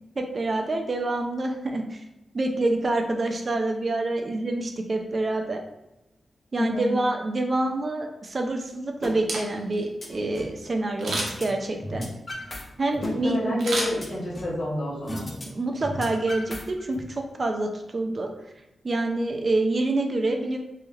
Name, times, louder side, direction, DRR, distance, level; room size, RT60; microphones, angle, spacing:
voice 1, 0.2-2.0 2.3-5.6 6.5-12.1 12.8-13.6 15.1-15.2 15.5-18.3 18.8-20.6, right 2 dB, 40° right, 3 dB, 0.4 m, -27 dB
voice 2, 6.6-6.9 13.0-15.3, left 1 dB, 60° left, -5 dB, 1.0 m, -29 dB
sound 1, 9.0-9.1 9.5-10.6 11.1-11.5 11.7-12.6 12.9-14.6 15.1-15.4 15.7-17.0, left 1 dB, 30° left, 0.5 m, -36 dB
Camera, 9.1-9.8 11.0-11.5 13.6-14.5 14.9-15.0, right 2 dB, 85° right, 0.6 m, -31 dB
3.1 x 2.7 x 2.3 m, 0.94 s
wide cardioid pair, 110°, 0 cm